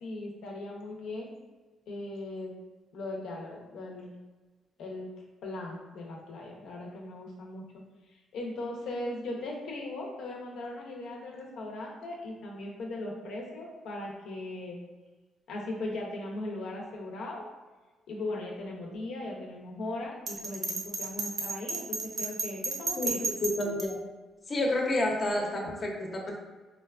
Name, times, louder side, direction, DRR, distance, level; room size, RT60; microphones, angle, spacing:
voice 1, 0.0-1.3 1.9-2.5 2.9-4.1 4.8-5.1 5.4-7.6 8.3-14.8 15.5-17.5 18.1-23.2, left 2 dB, 80° left, -1 dB, 0.7 m, -38 dB
Bell, 20.3-23.9, right 4 dB, 60° right, 0.5 m, -32 dB
voice 2, 23.0-24.0 24.5-26.4, left 1 dB, 40° left, 0 dB, 0.7 m, -30 dB
3.8 x 2.3 x 2.4 m, 1.3 s
cardioid pair, 90°, 0 cm